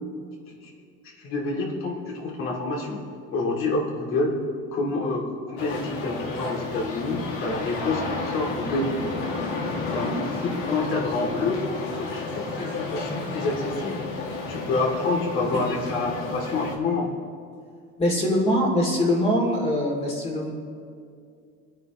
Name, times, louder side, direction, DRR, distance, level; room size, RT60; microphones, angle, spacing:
voice 1, 1.2-3.0 3.3-4.4 4.7-11.6 12.0-14.1 14.5-17.1, left 3 dB, 45° left, -1 dB, 2.4 m, -28 dB
sound 1, 5.6-16.8, left 3 dB, 85° left, 2.2 m, -32 dB
voice 2, 18.0-20.5, equal, 20° left, -1 dB, 2.5 m, -23 dB
25.0 x 9.3 x 3.0 m, 2.3 s
cardioid pair, 155°, 29 cm